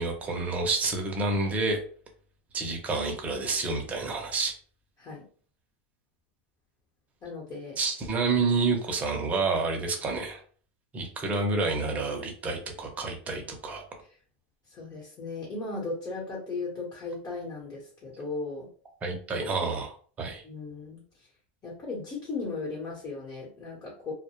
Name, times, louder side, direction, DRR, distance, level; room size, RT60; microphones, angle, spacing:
voice 1, 0.0-1.8 2.5-4.5 7.8-10.4 10.9-13.8 19.0-20.4, right 3 dB, 20° right, 2 dB, 0.7 m, -29 dB
voice 2, 7.2-7.8 10.0-10.1 14.7-18.7 20.4-21.0 21.6-24.1, left 3 dB, 30° left, -4 dB, 1.0 m, -36 dB
2.1 x 2.1 x 3.0 m, 0.43 s
supercardioid pair, 130°, 6 cm